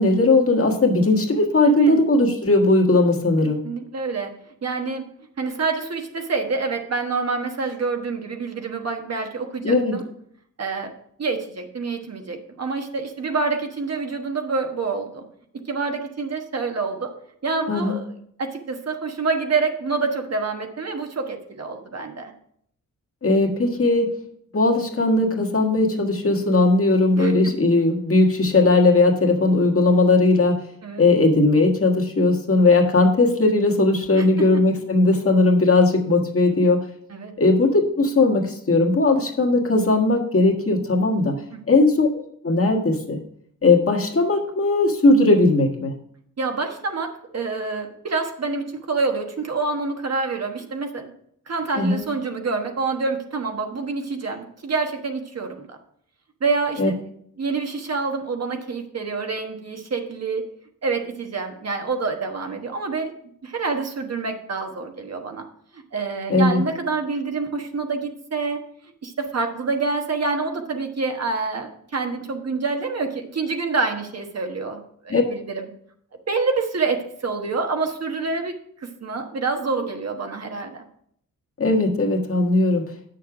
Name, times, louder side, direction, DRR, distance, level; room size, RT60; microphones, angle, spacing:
voice 1, 0.0-3.6 9.6-10.0 17.7-18.0 23.2-24.1 24.5-30.6 31.0-36.8 37.4-41.3 41.7-43.2 43.6-45.9 51.8-52.0 56.8-56.9 66.3-66.6 75.1-75.2 81.6-82.8, left 2 dB, 45° left, 1 dB, 1.6 m, -18 dB
voice 2, 1.6-2.0 3.6-4.3 4.6-5.0 5.4-10.1 10.6-10.9 11.2-15.2 15.7-17.1 17.4-18.1 18.4-22.3 27.2-27.3 30.8-31.1 34.2-34.3 34.5-34.6 37.1-37.3 41.5-41.6 46.4-51.1 51.5-55.8 56.4-56.9 57.4-60.4 60.8-63.1 63.4-65.4 65.7-68.6 69.0-75.7 76.3-78.5 78.8-80.8, right 4 dB, 50° right, 4 dB, 1.2 m, -27 dB
8.3 x 6.6 x 4.9 m, 0.68 s
wide cardioid pair, 100°, 32 cm